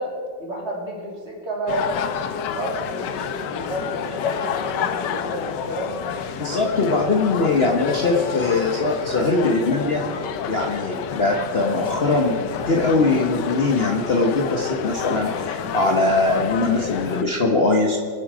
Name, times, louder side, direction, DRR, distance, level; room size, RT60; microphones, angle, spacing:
voice 1, 0.0-2.0 2.5-6.0, right 1 dB, 35° right, -3 dB, 3.5 m, -31 dB
sound 1, 1.7-17.2, left 8 dB, 70° left, 1.4 m, -29 dB
voice 2, 6.4-12.3 12.7-18.0, left 3 dB, 40° left, 0 dB, 1.2 m, -21 dB
24.5 x 8.5 x 5.0 m, 2.1 s
omnidirectional pair, 2.0 m